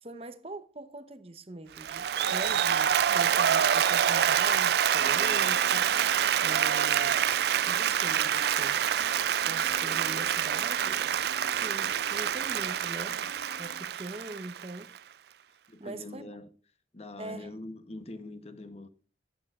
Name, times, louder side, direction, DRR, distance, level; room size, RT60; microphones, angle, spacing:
voice 1, 0.0-5.9 6.4-7.2 7.6-8.8 9.4-11.2 11.5-13.3 13.6-14.9 15.8-16.3 17.2-17.5, right 2 dB, 35° right, 0.9 m, -42 dB
Applause, 1.8-15.0, right 9 dB, 60° right, 0.3 m, -26 dB
sound 1, 5.0-13.9, left 2 dB, 80° left, 0.9 m, -49 dB
voice 2, 15.7-16.5 16.9-18.9, left 2 dB, 35° left, 0.9 m, -43 dB
13.5 x 9.1 x 2.5 m
head